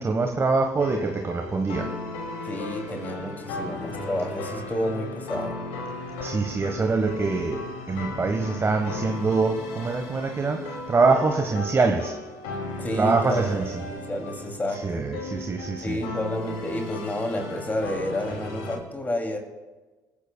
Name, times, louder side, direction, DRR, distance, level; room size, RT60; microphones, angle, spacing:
voice 1, 0.0-1.9 6.2-7.6 7.9-12.1 13.0-13.6 14.8-16.0, right 4 dB, 30° right, 4 dB, 1.3 m, -24 dB
sound 1, 0.8-18.8, left 2 dB, 75° left, 2.5 m, -36 dB
voice 2, 2.4-5.6 12.8-13.4 13.9-15.0 15.8-19.4, left 1 dB, 20° left, 3 dB, 2.6 m, -30 dB
28.5 x 10.0 x 2.3 m, 1.2 s
hypercardioid pair, 55°, 9 cm